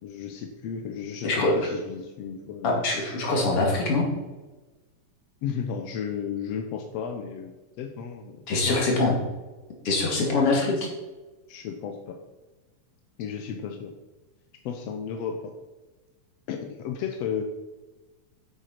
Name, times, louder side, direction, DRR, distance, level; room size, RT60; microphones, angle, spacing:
voice 1, 0.0-2.8 5.4-7.5 7.8-9.1 10.2-10.7 11.5-12.2 13.2-13.9 14.7-15.5 16.5-17.4, left 7 dB, 70° left, 4 dB, 1.6 m, -33 dB
voice 2, 1.2-1.7 2.6-4.1 8.5-9.2 9.8-10.9, left 2 dB, 50° left, -1 dB, 3.2 m, -23 dB
8.3 x 8.1 x 5.8 m, 1.2 s
omnidirectional pair, 3.6 m